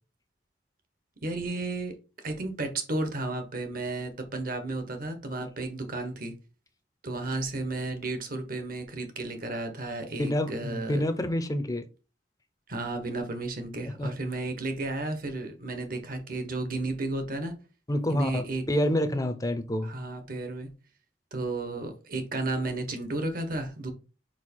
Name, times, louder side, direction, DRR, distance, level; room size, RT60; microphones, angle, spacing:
voice 1, 1.2-1.9 2.2-6.3 7.0-11.0 12.7-17.5 18.1-18.6 19.8-20.7 21.3-23.9, right 2 dB, 50° right, 1.3 m, -33 dB
voice 2, 10.2-11.8 14.0-14.1 17.9-19.9, left 1 dB, 20° left, 0.7 m, -28 dB
4.7 x 4.6 x 4.4 m
head